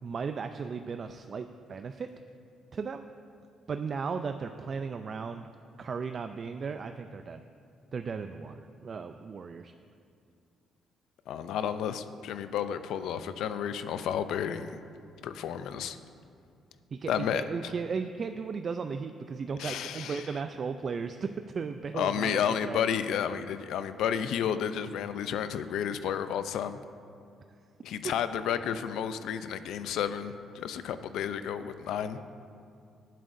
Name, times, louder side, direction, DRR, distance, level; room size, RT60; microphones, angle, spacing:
voice 1, 0.0-2.1 2.7-3.1 3.7-5.5 5.8-7.4 7.9-9.7 16.9-22.8, right 5 dB, 45° right, 8 dB, 0.4 m, -36 dB
voice 2, 11.3-14.8 15.2-16.0 17.1-17.7 19.6-20.3 21.9-26.8 27.8-32.2, left 8 dB, 85° left, 11 dB, 0.5 m, -31 dB
21.0 x 7.5 x 2.6 m, 2.4 s
cardioid pair, 90°, 0 cm